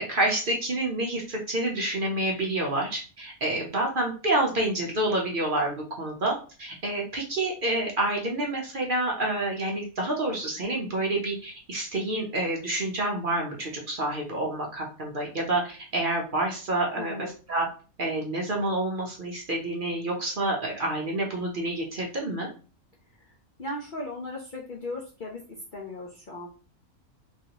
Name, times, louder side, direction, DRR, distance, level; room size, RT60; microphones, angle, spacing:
voice 1, 0.0-17.7 18.0-22.5, right 1 dB, 50° right, -1 dB, 0.6 m, -28 dB
voice 2, 16.9-17.3 23.1-23.2 23.6-25.4 25.7-26.5, left 2 dB, 55° left, -2 dB, 0.5 m, -37 dB
3.2 x 2.6 x 2.8 m, 0.36 s
omnidirectional pair, 1.6 m